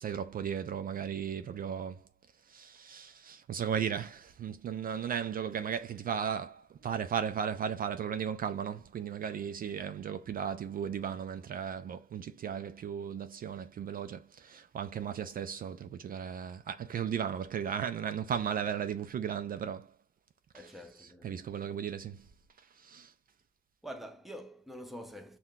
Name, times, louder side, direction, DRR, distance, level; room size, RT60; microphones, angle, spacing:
voice 1, 0.0-2.0 2.5-19.9 20.5-22.3 22.6-23.1, right 8 dB, 45° right, 0.4 m, -36 dB
voice 2, 9.6-9.9 20.5-21.4 23.8-25.4, equal, ahead, 0.7 m, -46 dB
5.6 x 2.2 x 2.4 m
cardioid pair, 90°, 20 cm